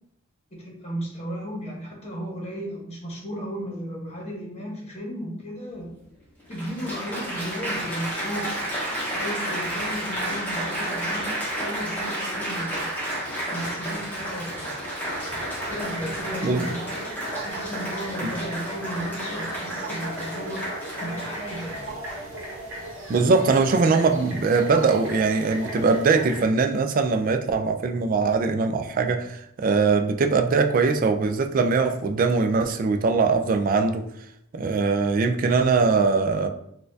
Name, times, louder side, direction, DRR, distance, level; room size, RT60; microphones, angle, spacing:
voice 1, 0.5-6.0 6.5-12.8 13.5-14.8 15.6-20.6 21.0-21.9, equal, 30° left, -2 dB, 1.0 m, -35 dB
Applause, 5.7-5.8 6.5-22.4 23.2-23.5, right 1 dB, 10° left, 0.9 m, -31 dB
sound 1, 15.1-26.5, right 1 dB, 60° right, 1.0 m, -37 dB
voice 2, 23.1-34.0 34.5-36.5, right 4 dB, 40° right, 6 dB, 0.3 m, -21 dB
4.1 x 2.3 x 2.6 m, 0.73 s
head